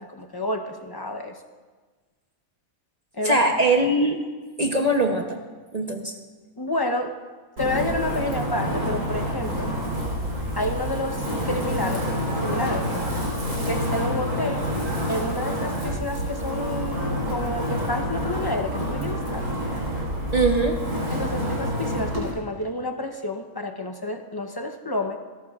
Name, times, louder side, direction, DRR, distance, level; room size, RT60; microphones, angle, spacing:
voice 1, 0.0-1.4 3.1-3.4 6.6-7.2 7.6-9.7 10.6-13.3 13.7-14.6 15.1-19.5 21.1-25.2, left 1 dB, 25° left, 5 dB, 0.6 m, -30 dB
voice 2, 3.2-4.2 4.6-5.4 5.7-6.1 20.3-20.8, right 2 dB, 35° right, 3 dB, 0.8 m, -21 dB
Wind, 7.6-22.3, equal, 90° right, 3.9 m, -28 dB
27.5 x 12.0 x 2.4 m, 1.4 s
omnidirectional pair, 1.5 m